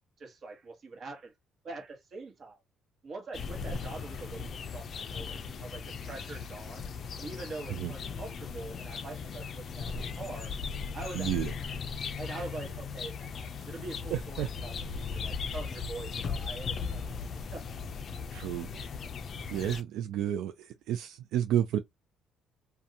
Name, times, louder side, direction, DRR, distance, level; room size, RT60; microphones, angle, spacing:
voice 1, 0.2-1.3 1.6-2.6 3.0-6.9 7.2-10.5 10.9-11.8 12.2-17.7 18.3-18.4, right 3 dB, 45° right, 1.1 m, -44 dB
sound 1, 3.3-19.8, left 5 dB, 45° left, 0.4 m, -38 dB
voice 2, 11.1-11.5 14.1-14.5 18.3-18.7 19.5-21.8, right 11 dB, 80° right, 0.3 m, -31 dB
2.6 x 2.2 x 2.7 m
cardioid pair, 120°, 0 cm